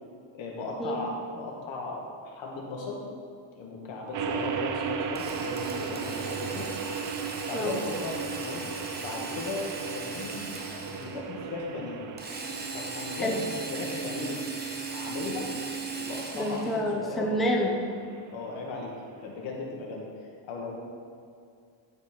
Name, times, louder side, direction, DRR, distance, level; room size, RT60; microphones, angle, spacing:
voice 1, 0.3-3.0 3.6-6.7 7.5-8.7 9.0-10.6 10.9-12.0 12.7-14.4 14.9-15.5 15.9-17.7 18.3-18.9 19.2-20.8, left 3 dB, 75° left, -2 dB, 2.0 m, -37 dB
sound 1, 4.1-19.4, right 6 dB, 40° right, 0.6 m, -37 dB
Drill, 5.1-11.2 12.2-16.8, right 4 dB, 20° right, 0.9 m, -38 dB
voice 2, 16.3-17.9, equal, ahead, -1 dB, 0.6 m, -28 dB
13.0 x 4.4 x 4.4 m, 2.3 s
cardioid pair, 145°, 47 cm